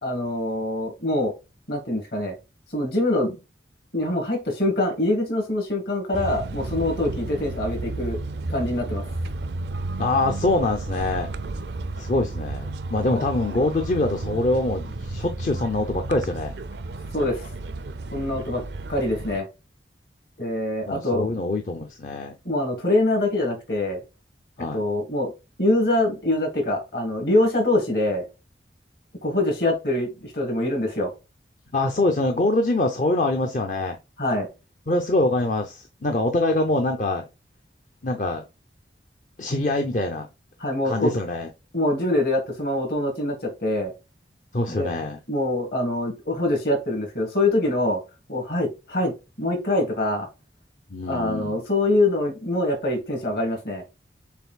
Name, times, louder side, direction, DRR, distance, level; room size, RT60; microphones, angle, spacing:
voice 1, 0.0-1.3 1.7-2.3 2.7-3.3 3.9-8.2 8.5-9.0 13.0-13.2 17.1-17.5 18.1-18.6 18.9-19.5 20.4-21.3 22.4-24.0 24.7-25.3 25.6-28.2 29.2-31.1 34.2-34.5 40.6-41.1 41.7-43.9 44.7-44.9 45.3-48.0 48.3-50.3 51.1-53.8, left 1 dB, 65° left, 2.1 m, -24 dB
sound 1, 6.1-19.4, right 2 dB, 75° right, 0.5 m, -32 dB
voice 2, 10.0-11.3 12.0-16.5 20.9-22.3 24.6-24.8 31.7-34.0 34.9-37.2 38.0-38.4 39.4-40.3 40.8-41.5 44.5-45.2 50.9-51.6, left 2 dB, 45° left, 0.5 m, -24 dB
6.9 x 2.6 x 2.2 m
head